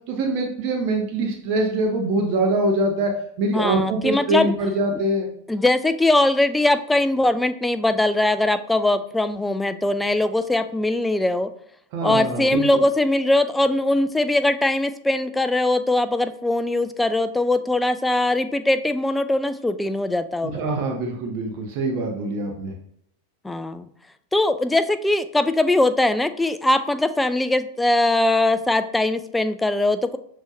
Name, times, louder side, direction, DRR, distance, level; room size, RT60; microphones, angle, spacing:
voice 1, 0.1-3.1 3.4-5.3 11.9-12.8 20.4-22.7, right 2 dB, 45° right, 2 dB, 0.8 m, -24 dB
voice 2, 3.5-4.5 5.5-11.5 12.0-20.6 23.4-23.9 24.3-30.2, left 2 dB, 5° left, 10 dB, 0.3 m, -21 dB
6.1 x 3.1 x 2.6 m, 0.68 s
figure-of-eight pair, 90°, 0 cm